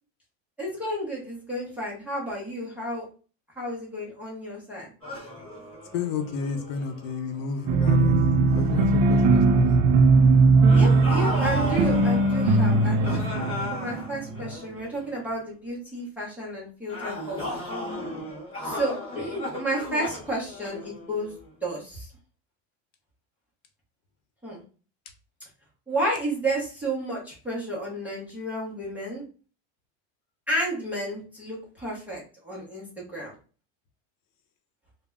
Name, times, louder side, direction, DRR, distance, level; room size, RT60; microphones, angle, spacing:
voice 1, 0.6-3.1 3.6-4.9 10.7-13.1 13.7-17.6 18.6-21.3 21.6-22.1 24.4-24.6 25.9-29.2 30.5-33.3, right 1 dB, 5° right, -6 dB, 0.5 m, -31 dB
sound 1, 5.0-8.1 8.5-8.8 10.6-15.2 16.9-21.5, left 2 dB, 15° left, 1.0 m, -36 dB
voice 2, 5.9-8.2 8.5-9.8, left 5 dB, 60° left, 7 dB, 0.5 m, -31 dB
sound 2, 7.7-14.5, right 3 dB, 80° right, 0.5 m, -19 dB
2.1 x 2.0 x 3.4 m, 0.37 s
cardioid pair, 170°, 40 cm